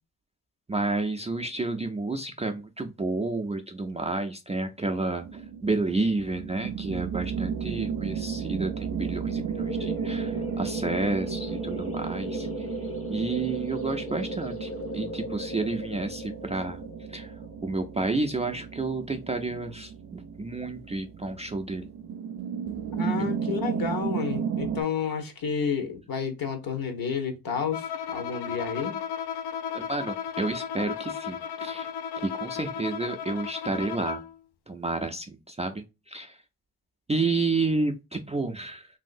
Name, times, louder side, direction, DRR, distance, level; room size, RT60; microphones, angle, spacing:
voice 1, 0.7-12.7 13.1-16.8 17.1-17.3 17.6-21.9 23.2-23.3 29.7-31.9 32.2-34.2 34.7-36.4 37.1-38.9, right 3 dB, 20° right, 0.3 m, -30 dB
sound 1, 5.2-24.8, right 7 dB, 75° right, 0.5 m, -34 dB
sound 2, 9.5-18.9, left 2 dB, 35° left, 0.8 m, -38 dB
voice 2, 22.9-28.9, left 6 dB, 60° left, 1.0 m, -30 dB
Bowed string instrument, 27.7-34.4, left 8 dB, 80° left, 0.5 m, -35 dB
3.1 x 2.7 x 2.5 m
wide cardioid pair, 100°, 38 cm